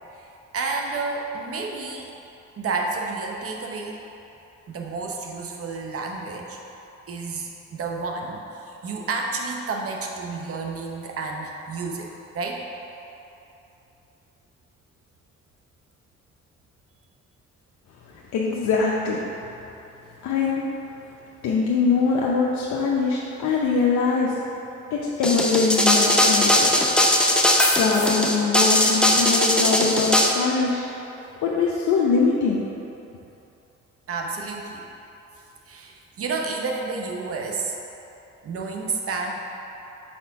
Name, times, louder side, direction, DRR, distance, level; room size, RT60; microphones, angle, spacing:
voice 1, 0.5-2.1 2.6-4.0 4.7-6.6 7.1-12.1 12.3-12.6 34.1-34.8 35.7-37.7 38.4-39.3, right 4 dB, 50° right, 1 dB, 0.8 m, -30 dB
voice 2, 18.1-19.2 20.2-20.6 21.4-24.4 24.9-26.9 27.8-30.8 31.4-32.6, left 4 dB, 70° left, -3 dB, 0.7 m, -23 dB
sound 1, 25.2-30.3, left 1 dB, 5° left, 0.6 m, -19 dB
4.3 x 4.2 x 5.6 m, 2.9 s
cardioid pair, 90°, 30 cm